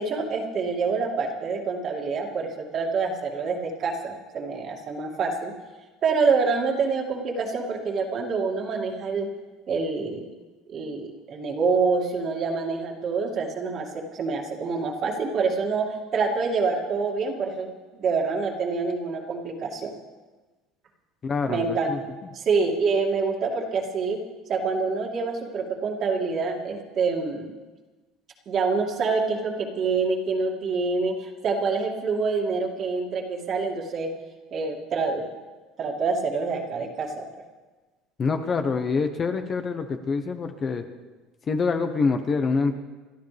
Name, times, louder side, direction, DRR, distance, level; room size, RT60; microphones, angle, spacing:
voice 1, 0.0-5.5 6.0-9.3 9.7-10.3 10.7-19.9 21.5-21.9 22.3-24.2 24.5-27.5 28.5-34.1 34.5-35.2 35.8-37.2, right 4 dB, 40° right, 1 dB, 2.5 m, -26 dB
voice 2, 21.2-22.0 38.2-40.8 41.5-42.8, left 4 dB, 30° left, 7 dB, 1.1 m, -25 dB
29.5 x 12.0 x 3.5 m, 1.3 s
cardioid pair, 130°, 0 cm